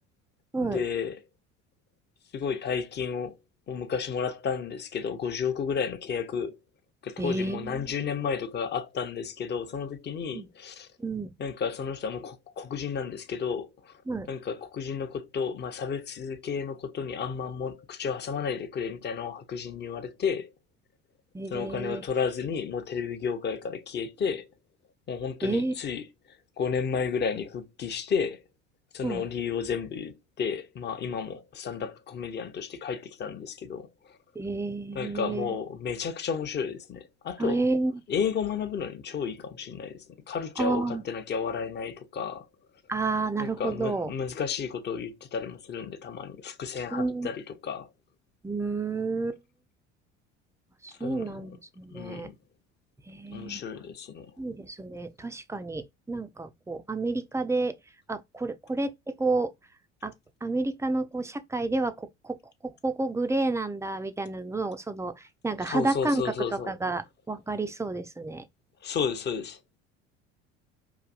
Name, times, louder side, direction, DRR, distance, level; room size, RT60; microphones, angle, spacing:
voice 1, 0.6-1.2 2.3-3.4 3.7-6.6 7.0-10.9 11.4-13.9 14.3-20.5 21.5-24.5 25.1-26.0 26.6-28.4 28.9-34.2 34.9-37.6 38.1-42.5 43.4-47.9 51.0-51.4 51.9-52.3 53.3-54.3 65.7-66.7 68.8-69.6, left 6 dB, 30° left, 0.8 m, -32 dB
voice 2, 7.2-7.9 10.3-10.5 11.0-11.3 14.1-14.3 21.3-22.0 25.4-25.7 29.0-29.2 34.4-35.5 37.4-38.0 40.6-41.0 42.9-44.1 46.9-47.3 48.4-49.4 50.8-52.3 53.1-53.6 54.4-57.7 58.1-59.5 60.0-60.1 60.4-62.4 62.6-68.4, right 3 dB, 10° right, 0.5 m, -30 dB
4.8 x 2.6 x 2.4 m
figure-of-eight pair, 65°, 36 cm